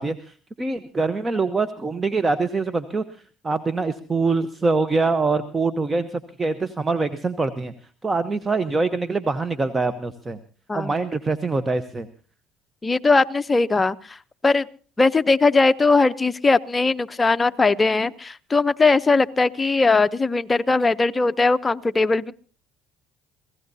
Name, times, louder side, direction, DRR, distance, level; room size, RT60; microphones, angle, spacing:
voice 1, 0.0-3.0 3.4-7.7 8.0-10.4 10.7-12.1, right 3 dB, 20° right, 12 dB, 0.9 m, -24 dB
voice 2, 12.8-14.2 14.4-14.7 15.0-22.3, left 3 dB, 20° left, 11 dB, 0.7 m, -19 dB
26.5 x 17.0 x 2.7 m, 0.38 s
supercardioid pair, 90°, 0 cm